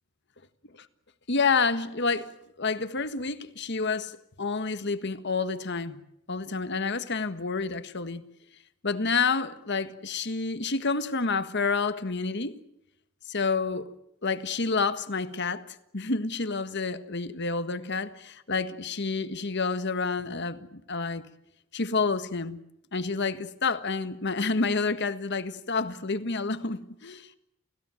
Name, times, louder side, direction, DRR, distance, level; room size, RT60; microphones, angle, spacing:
voice 1, 1.3-2.3 2.6-6.0 6.3-8.2 8.8-12.6 13.3-13.9 14.2-21.3 21.7-22.6 22.9-27.4, left 4 dB, 55° left, 1.6 m, -29 dB
29.5 x 16.5 x 9.2 m
head